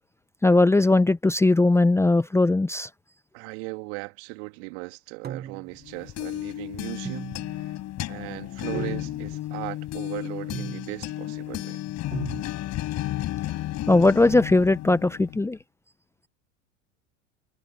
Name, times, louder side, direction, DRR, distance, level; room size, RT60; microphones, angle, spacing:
voice 1, 0.4-2.9 13.9-15.6, left 2 dB, 5° left, 0.9 m, -19 dB
voice 2, 3.3-7.7 8.1-11.8, right 31 dB, 55° right, 2.8 m, -38 dB
sound 1, 5.2-5.9 7.0-7.7 8.7-9.3 10.5-11.1 12.1-12.4, right 9 dB, 25° right, 1.0 m, -37 dB
sound 2, 5.8-15.5, left 14 dB, 45° left, 5.7 m, -33 dB
hypercardioid pair, 85°, 38 cm